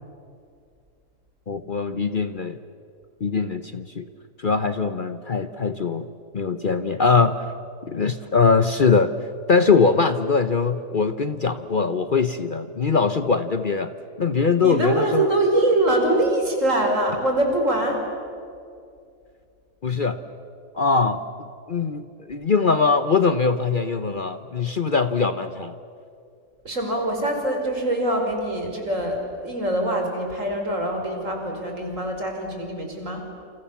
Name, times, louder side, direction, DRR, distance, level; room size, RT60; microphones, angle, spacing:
voice 1, 1.5-2.6 3.2-4.1 4.4-6.1 6.3-7.4 7.8-9.1 9.5-13.9 14.2-15.3 19.8-20.2 20.7-21.2 21.7-25.7, left 4 dB, 40° left, 10 dB, 1.0 m, -21 dB
voice 2, 14.6-18.0 26.7-33.2, right 1 dB, 65° right, 2 dB, 5.4 m, -23 dB
29.0 x 28.5 x 7.2 m, 2.4 s
omnidirectional pair, 1.4 m